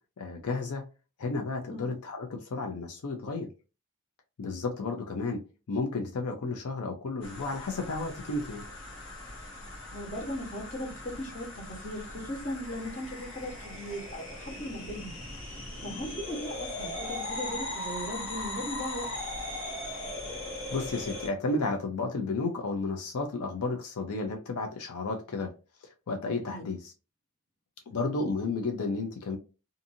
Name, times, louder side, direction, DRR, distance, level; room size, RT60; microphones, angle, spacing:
voice 1, 0.2-0.8 1.2-3.5 4.4-8.7 20.7-25.5 26.1-26.9 27.9-29.4, left 3 dB, 80° left, 0.5 m, -32 dB
sound 1, 7.2-21.3, left 1 dB, 65° left, 1.2 m, -39 dB
voice 2, 9.9-15.2 15.8-19.1 26.5-26.6, equal, 35° left, 1.1 m, -38 dB
2.6 x 2.5 x 2.6 m
head